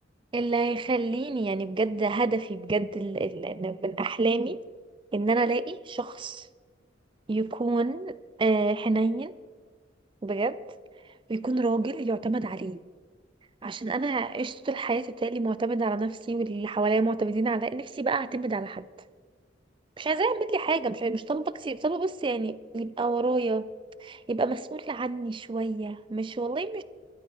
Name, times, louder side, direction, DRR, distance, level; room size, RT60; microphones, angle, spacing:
voice 1, 0.3-4.6 5.1-6.5 7.3-9.3 10.2-10.6 11.3-12.8 13.6-18.9 20.0-23.7 24.0-26.8, right 3 dB, 25° right, 16 dB, 0.4 m, -28 dB
12.5 x 11.0 x 6.3 m, 1.5 s
head